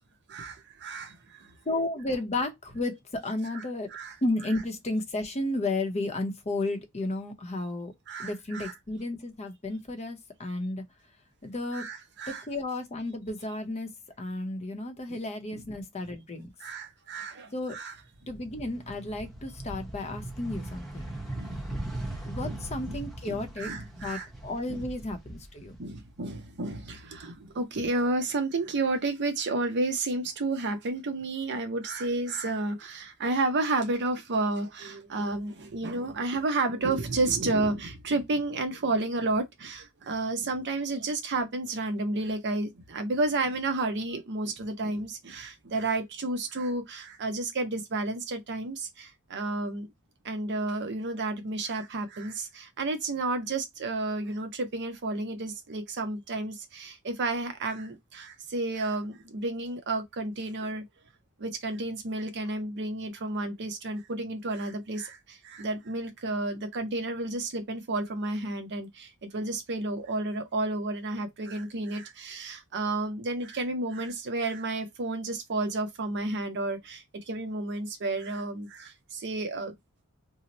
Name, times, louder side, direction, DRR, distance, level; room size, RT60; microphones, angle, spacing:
voice 1, 0.3-1.5 3.4-4.2 4.5-4.6 8.1-8.8 11.7-12.5 15.1-15.2 15.5-15.7 16.6-18.0 21.4-21.6 22.5-23.0 23.2-24.3 24.7-24.9 25.8-49.9 50.2-60.8 61.4-79.7, right 2 dB, 55° right, 0.6 m, -31 dB
voice 2, 1.7-3.9 4.2-7.9 8.2-10.8 11.4-11.9 12.3-16.5 17.5-17.8 18.3-21.2 22.3-23.7 24.0-25.8, left 2 dB, 30° left, 0.7 m, -33 dB
sound 1, 18.1-26.3 26.6-27.8, right 1 dB, ahead, 0.8 m, -39 dB
2.9 x 2.1 x 3.8 m
head